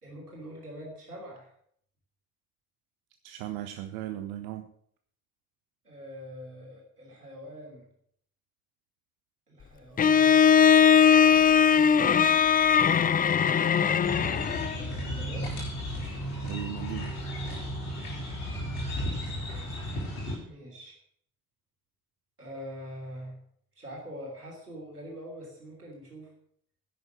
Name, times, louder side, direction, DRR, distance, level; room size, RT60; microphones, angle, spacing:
voice 1, 0.0-1.5 5.8-7.9 9.5-10.5 13.4-15.5 20.4-21.0 22.4-23.4 23.8-26.3, equal, 85° right, -1 dB, 3.0 m, -44 dB
voice 2, 3.2-4.7 16.4-17.1 17.8-18.1, right 13 dB, 65° right, 8 dB, 0.9 m, -37 dB
Bowed string instrument, 10.0-14.8, left 7 dB, 20° left, 0.5 m, -20 dB
sound 1, 14.0-20.4, equal, 75° left, 4.2 m, -34 dB
11.0 x 8.3 x 7.7 m, 0.64 s
figure-of-eight pair, 45°, 44 cm